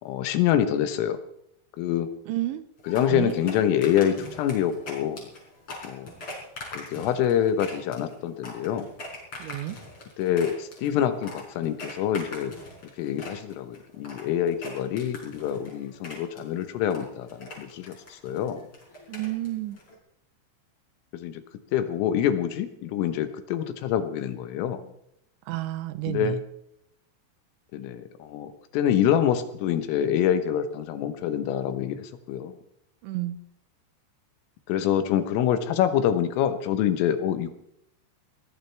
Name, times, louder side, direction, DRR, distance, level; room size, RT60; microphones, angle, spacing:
voice 1, 0.0-1.2 1.8-2.1 2.9-5.3 5.8-6.1 6.7-8.9 10.2-12.5 13.0-18.6 21.1-21.4 21.7-24.9 26.1-26.4 27.7-32.6 34.7-37.5, left 10 dB, 90° left, 9 dB, 3.8 m, -26 dB
voice 2, 2.3-2.7 3.1-3.3 9.4-9.8 19.1-19.8 25.5-26.4 33.0-33.4, right 15 dB, 80° right, 11 dB, 3.1 m, -30 dB
sound 1, 2.8-20.0, left 2 dB, 30° left, 5.4 m, -43 dB
21.5 x 18.5 x 3.5 m, 0.75 s
omnidirectional pair, 5.7 m